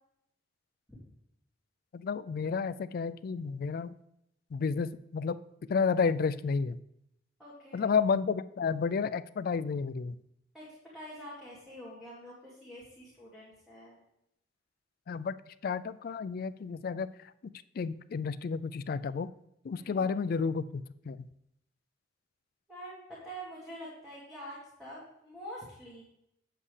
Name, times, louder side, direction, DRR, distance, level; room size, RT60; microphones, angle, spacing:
voice 1, 1.9-4.0 4.5-5.4 5.7-6.8 7.7-10.2 15.1-17.1 17.8-19.3 19.6-21.3, left 5 dB, 55° left, 15 dB, 0.3 m, -31 dB
voice 2, 7.4-7.9 10.5-10.6 10.9-14.0 19.8-20.1 22.7-26.0, equal, ahead, -8 dB, 2.1 m, -46 dB
8.4 x 7.5 x 3.3 m, 0.80 s
head